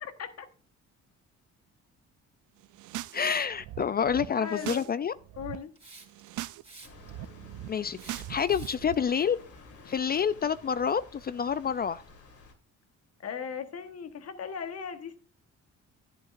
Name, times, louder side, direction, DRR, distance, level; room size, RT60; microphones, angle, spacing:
voice 1, 0.0-0.5 4.3-4.9 5.3-5.7 13.2-15.2, left 7 dB, 55° left, 1.3 m, -38 dB
sound 1, 2.6-3.2 3.5-4.9 5.2-5.6 6.0-6.6 6.9-8.9, right 14 dB, 80° right, 0.5 m, -40 dB
voice 2, 3.1-5.1 7.7-9.4 9.9-12.0, left 7 dB, 30° left, 0.4 m, -28 dB
Hiss, 5.8-6.3 6.6-7.3 8.0-8.9, right 3 dB, 20° right, 3.0 m, -50 dB
sound 2, 6.8-12.5, left 4 dB, 75° left, 2.5 m, -53 dB
11.0 x 11.0 x 2.5 m
cardioid pair, 90°, 30 cm